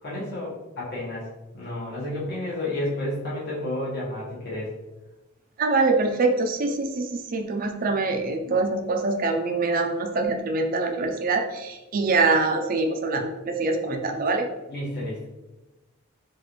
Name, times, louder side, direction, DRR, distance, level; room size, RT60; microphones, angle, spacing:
voice 1, 0.0-1.3 1.5-4.7 8.4-8.5 14.7-15.2, left 1 dB, 55° left, -6 dB, 1.3 m, -31 dB
voice 2, 5.6-14.5, right 3 dB, 45° right, 5 dB, 0.4 m, -24 dB
3.9 x 2.6 x 3.1 m, 1.0 s
head